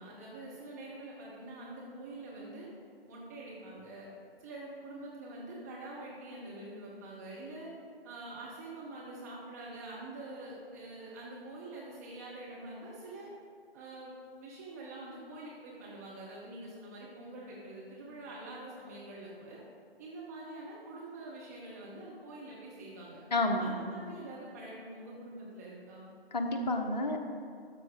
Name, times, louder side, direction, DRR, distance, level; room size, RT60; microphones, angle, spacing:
voice 1, 0.0-2.7 3.1-4.1 4.4-7.7 8.0-13.3 13.7-14.1 14.4-19.6 20.0-23.2 23.6-26.1, right 2 dB, 15° right, -5 dB, 0.7 m, -45 dB
voice 2, 23.3-23.9 26.3-27.2, left 2 dB, 45° left, 4 dB, 0.9 m, -30 dB
12.0 x 6.3 x 3.7 m, 2.3 s
figure-of-eight pair, 135°, 31 cm